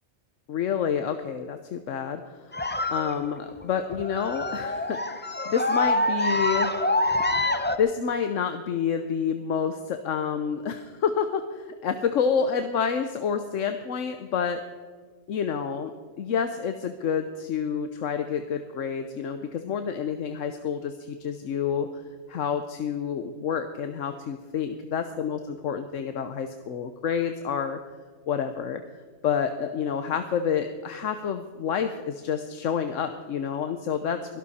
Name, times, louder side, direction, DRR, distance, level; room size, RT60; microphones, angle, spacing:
voice 1, 0.5-2.5 2.9-6.7 7.8-14.6 15.3-15.9 16.2-22.0 22.3-27.8 28.3-28.8 29.2-34.4, left 7 dB, 80° left, 8 dB, 1.2 m, -28 dB
sound 1, 2.5-7.8, left 1 dB, 15° left, 0.5 m, -26 dB
23.0 x 12.5 x 4.2 m, 1.5 s
omnidirectional pair, 1.3 m